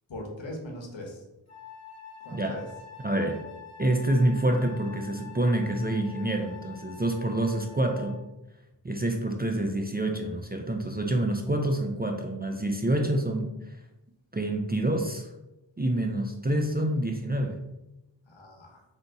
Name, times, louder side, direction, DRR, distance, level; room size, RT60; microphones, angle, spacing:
voice 1, 0.1-1.2 2.2-2.6 18.2-18.8, left 1 dB, 70° left, 1 dB, 1.0 m, -40 dB
Wind instrument woodwind instrument, 1.5-8.3, left 6 dB, 35° left, 0.8 m, -47 dB
voice 2, 3.0-3.4 3.8-8.2 8.8-13.8 14.3-15.3 15.8-17.6, right 1 dB, 20° right, 3 dB, 0.4 m, -27 dB
3.5 x 2.7 x 3.9 m, 0.94 s
wide cardioid pair, 50°, 47 cm